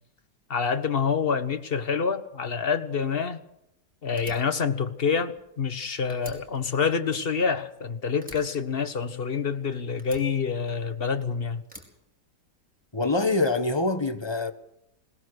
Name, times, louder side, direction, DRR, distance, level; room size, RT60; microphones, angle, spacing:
voice 1, 0.5-3.4 4.0-11.6, left 6 dB, 35° left, 1.4 m, -27 dB
Fire, 4.2-5.8 6.1-7.8 8.2-9.5 10.0-11.1 11.6-12.8, left 1 dB, 5° right, 4.8 m, -48 dB
voice 2, 12.9-14.5, left 2 dB, 15° left, 1.3 m, -25 dB
21.5 x 20.0 x 6.5 m
omnidirectional pair, 1.8 m